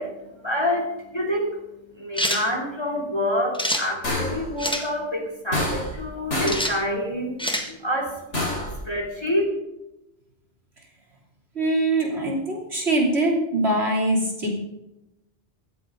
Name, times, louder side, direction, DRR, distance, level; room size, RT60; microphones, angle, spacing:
voice 1, 0.0-9.4, left 1 dB, 20° left, 0 dB, 3.5 m, -28 dB
sound 1, 2.2-2.5 3.5-3.9 4.6-4.9 6.5-6.8 7.4-7.7, equal, 5° left, 1.6 m, -25 dB
sound 2, 4.0-4.5 5.5-6.0 6.3-6.7 8.3-8.8, left 1 dB, 90° left, 4.8 m, -26 dB
voice 2, 11.6-14.6, right 1 dB, 65° right, -1 dB, 3.5 m, -23 dB
16.5 x 14.0 x 3.9 m, 0.91 s
omnidirectional pair, 1.2 m